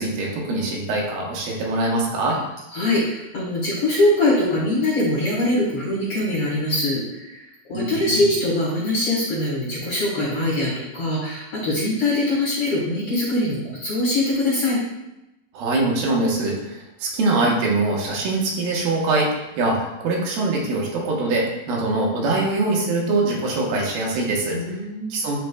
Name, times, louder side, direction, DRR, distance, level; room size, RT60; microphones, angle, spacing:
voice 1, 0.0-2.4 7.7-8.2 15.5-24.8 25.1-25.4, right 2 dB, 80° right, -2 dB, 2.9 m, -23 dB
voice 2, 2.7-7.4 7.7-14.8 24.5-25.2, left 1 dB, 50° left, -6 dB, 1.9 m, -22 dB
10.5 x 4.5 x 2.3 m, 0.92 s
omnidirectional pair, 4.3 m